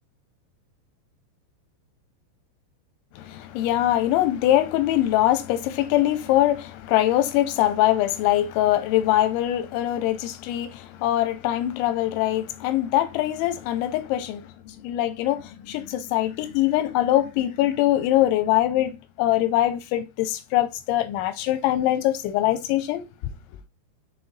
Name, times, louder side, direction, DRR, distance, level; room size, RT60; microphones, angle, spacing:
voice 1, 3.2-23.1, left 13 dB, 85° left, 3.0 m, -23 dB
6.8 x 4.0 x 4.2 m
omnidirectional pair, 5.6 m